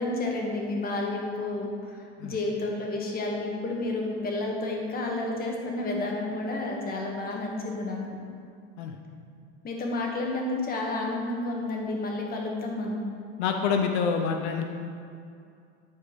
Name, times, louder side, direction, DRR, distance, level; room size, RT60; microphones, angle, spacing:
voice 1, 0.0-8.2 9.6-13.0, left 2 dB, 25° left, 0 dB, 1.5 m, -31 dB
voice 2, 13.4-14.6, left 6 dB, 80° left, 4 dB, 0.8 m, -26 dB
9.7 x 4.7 x 5.1 m, 2.4 s
supercardioid pair, 135°, 33 cm